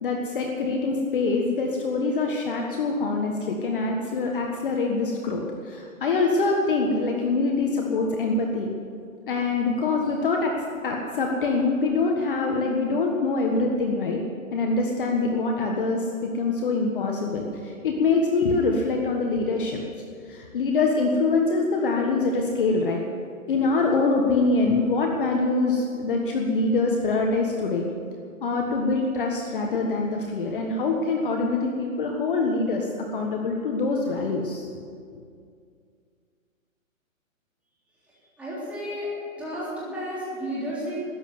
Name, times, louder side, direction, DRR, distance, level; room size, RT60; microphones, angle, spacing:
voice 1, 0.0-8.7 9.3-14.2 14.5-19.8 20.2-23.0 23.5-27.8 28.4-34.8, left 3 dB, 40° left, 1 dB, 1.5 m, -24 dB
voice 2, 38.4-39.1 39.4-41.1, equal, 5° right, -9 dB, 3.4 m, -32 dB
13.5 x 10.0 x 9.5 m, 2.2 s
hypercardioid pair, 165°, 41 cm